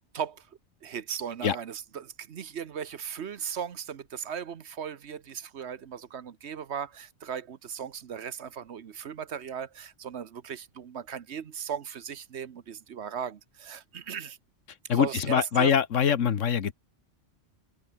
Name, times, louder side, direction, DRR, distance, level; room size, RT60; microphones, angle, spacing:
voice 1, 0.1-0.5 0.8-14.4 14.9-15.7, right 8 dB, 60° right, 1.2 m, -37 dB
voice 2, 14.9-16.7, left 8 dB, 75° left, 1.5 m, -24 dB
omnidirectional pair, 1.3 m